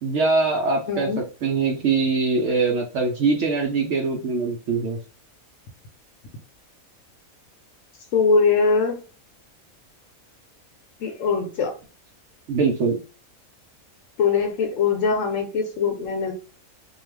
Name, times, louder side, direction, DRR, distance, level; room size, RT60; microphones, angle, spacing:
voice 1, 0.0-5.0 12.5-13.0, right 4 dB, 65° right, 0.8 m, -23 dB
voice 2, 0.9-1.2 8.1-9.0 11.0-11.7 14.2-16.3, left 5 dB, 70° left, 0.9 m, -21 dB
2.4 x 2.3 x 3.2 m
omnidirectional pair, 1.5 m